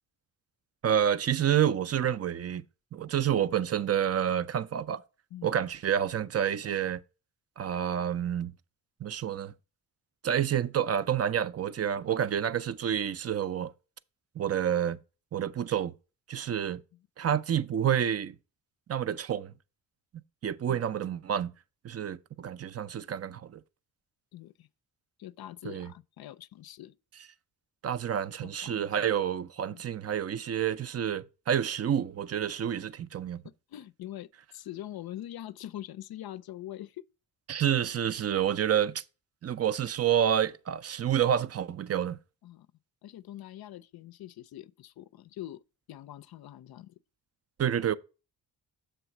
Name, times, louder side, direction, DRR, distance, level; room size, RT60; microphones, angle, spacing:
voice 1, 0.8-2.6 2.9-5.0 5.4-7.0 7.6-8.5 9.0-9.5 10.2-13.7 14.4-15.0 15.3-15.9 16.3-16.8 17.2-18.4 18.9-19.5 20.4-21.5 21.8-23.6 25.6-25.9 27.8-33.4 37.5-39.0 39.4-42.2 47.6-48.0, right 9 dB, 35° right, 0.5 m, -28 dB
voice 2, 24.3-24.7 25.2-26.9 28.4-29.1 29.7-29.8 33.7-37.0 42.4-42.7 43.0-45.6 45.9-47.0, left 13 dB, 55° left, 0.5 m, -44 dB
6.9 x 3.4 x 5.8 m
supercardioid pair, 45°, 46 cm